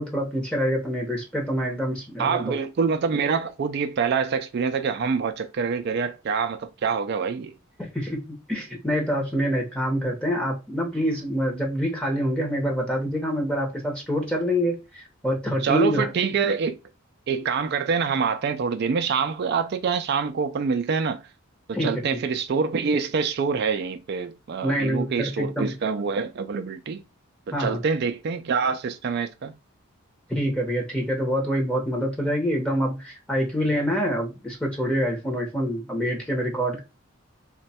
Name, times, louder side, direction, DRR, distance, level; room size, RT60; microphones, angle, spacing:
voice 1, 0.0-2.6 7.8-16.1 21.7-22.0 24.6-25.7 27.5-27.8 30.3-36.8, equal, 5° left, 0.7 m, -26 dB
voice 2, 2.2-7.5 15.6-16.8 17.3-21.2 21.7-27.0 27.5-29.5, right 5 dB, 50° right, 0.3 m, -26 dB
3.1 x 2.2 x 4.1 m
head